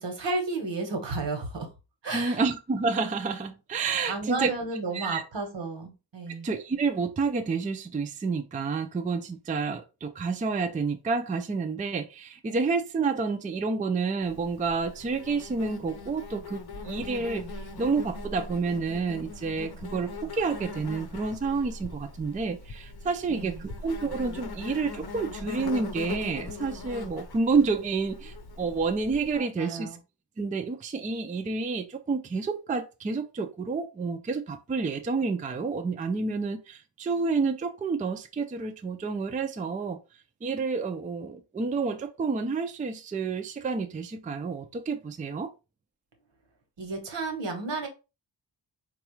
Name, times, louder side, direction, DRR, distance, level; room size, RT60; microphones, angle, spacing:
voice 1, 0.0-1.7 2.0-2.4 4.0-6.5 23.3-23.6 29.4-30.0 46.8-47.9, right 3 dB, 75° right, 1.1 m, -32 dB
voice 2, 2.1-4.5 4.9-5.2 6.4-17.4 17.8-30.0 30.4-40.0 40.4-45.5, right 4 dB, 20° right, 0.3 m, -29 dB
Insect, 14.2-29.4, left 3 dB, 60° left, 0.7 m, -40 dB
4.1 x 2.3 x 3.0 m
wide cardioid pair, 115°, 44 cm